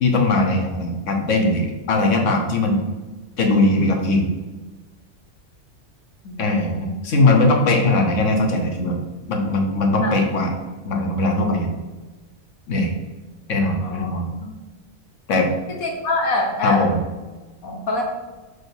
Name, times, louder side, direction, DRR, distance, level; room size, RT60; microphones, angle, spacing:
voice 1, 0.0-2.8 3.4-4.3 6.4-9.0 9.3-10.5 10.8-11.7 12.7-12.9 13.5-14.3 15.3-15.5 16.6-17.0, left 2 dB, 65° left, 3 dB, 1.4 m, -20 dB
voice 2, 6.2-7.0 10.0-10.2 13.8-14.1 14.4-14.5 15.7-16.8 17.6-18.0, left 2 dB, 90° left, 1 dB, 1.7 m, -25 dB
5.0 x 4.9 x 6.1 m, 1.2 s
omnidirectional pair, 1.4 m